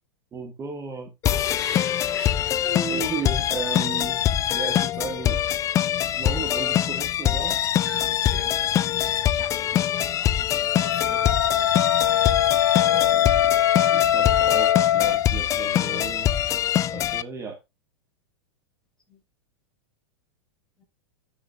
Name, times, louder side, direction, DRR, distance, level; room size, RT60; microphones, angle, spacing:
voice 1, 0.3-1.1 2.9-4.2 4.5-5.4 6.2-7.6 12.9-13.6 13.9-16.3 16.9-17.6, right 5 dB, 20° right, 1.8 m, -35 dB
sound 1, 1.2-17.2, left 11 dB, 25° left, 0.5 m, -24 dB
voice 2, 1.6-2.4 2.6-3.1 7.8-8.5 9.3-11.2 19.1-19.2 20.8-20.9, right 1 dB, 5° left, 5.2 m, -38 dB
Wind instrument woodwind instrument, 10.6-15.3, left 11 dB, 70° left, 0.6 m, -22 dB
10.5 x 6.8 x 2.5 m
figure-of-eight pair, 95°, 13 cm